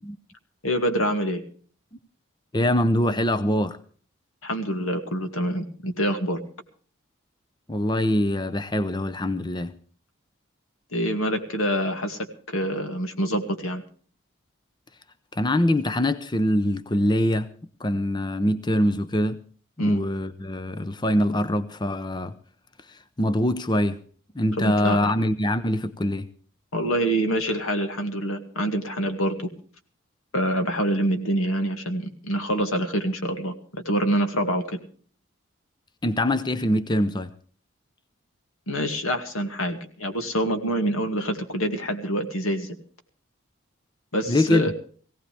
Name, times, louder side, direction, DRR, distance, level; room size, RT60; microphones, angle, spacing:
voice 1, 0.6-1.4 4.4-6.4 10.9-12.2 12.5-13.8 19.8-20.0 24.6-25.1 26.7-29.5 30.3-34.8 38.7-42.8 44.1-44.7, equal, 90° left, 2.2 m, -26 dB
voice 2, 2.5-3.8 7.7-9.7 15.3-17.5 17.8-19.4 19.8-22.3 22.9-24.0 24.4-26.3 36.0-37.3 44.3-44.7, left 1 dB, 20° left, 0.6 m, -23 dB
19.0 x 17.0 x 3.4 m
head